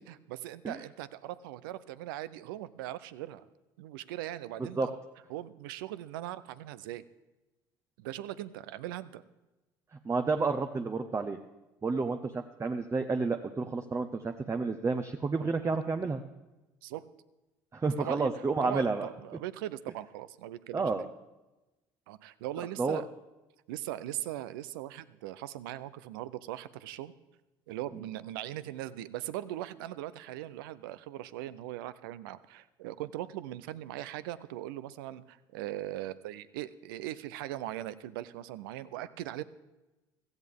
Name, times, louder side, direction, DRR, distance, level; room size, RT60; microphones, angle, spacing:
voice 1, 0.0-3.4 3.8-5.0 5.3-7.0 8.0-9.2 11.8-12.1 16.8-17.1 18.0-18.3 18.6-21.1 22.1-23.1 23.7-27.1 27.7-39.4, right 14 dB, 80° right, 16 dB, 0.5 m, -40 dB
voice 2, 9.9-11.4 11.8-16.2 17.7-19.1 20.7-21.1 22.8-23.0, right 4 dB, 25° right, 7 dB, 0.7 m, -30 dB
16.0 x 14.0 x 3.6 m, 1.0 s
hypercardioid pair, 65°, 11 cm